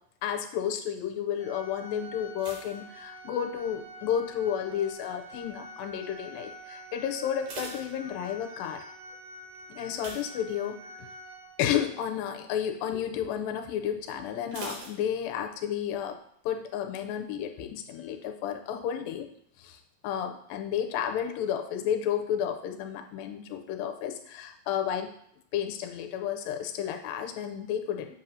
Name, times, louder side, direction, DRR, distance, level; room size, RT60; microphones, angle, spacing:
voice 1, 0.2-8.9 9.7-11.1 11.6-16.2 16.5-19.3 19.6-25.1 25.5-28.1, left 9 dB, 85° left, 4 dB, 2.3 m, -32 dB
Organ, 1.4-12.0, equal, 85° right, 3.1 m, -47 dB
sound 1, 2.3-3.8 4.1-4.6 5.2-5.6 5.9-6.0 6.4-6.5 7.1-8.6 9.9-11.1 11.4-11.7 12.1-12.2 14.5-15.7 16.0-16.1, right 3 dB, 65° right, 2.3 m, -44 dB
7.6 x 2.7 x 5.5 m, 0.70 s
omnidirectional pair, 4.2 m